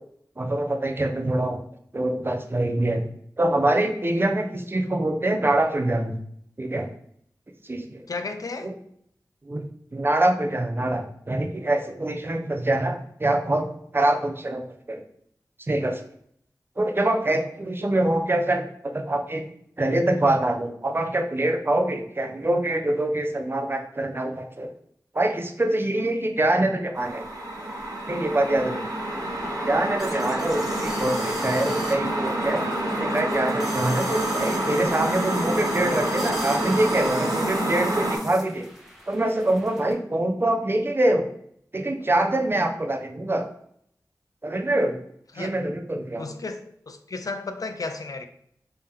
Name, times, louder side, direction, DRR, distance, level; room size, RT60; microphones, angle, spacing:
voice 1, 0.4-1.6 1.9-3.1 3.4-6.2 6.6-6.9 7.6-8.0 8.6-8.7 9.5-9.6 9.9-15.0 15.7-16.0 16.8-19.5 19.8-24.7 25.1-27.3 28.1-28.8 29.6-38.7 39.1-41.3 41.7-43.5 44.4-45.0 45.3-46.3, right 1 dB, 35° right, 0.5 m, -24 dB
voice 2, 8.1-8.7 45.4-45.5 46.2-48.3, left 3 dB, 60° left, 0.4 m, -33 dB
sound 1, 26.9-38.2, right 1 dB, 70° right, 1.3 m, -27 dB
sound 2, 30.0-39.9, equal, 5° right, 0.9 m, -40 dB
3.4 x 2.8 x 3.6 m
wide cardioid pair, 50°, 7 cm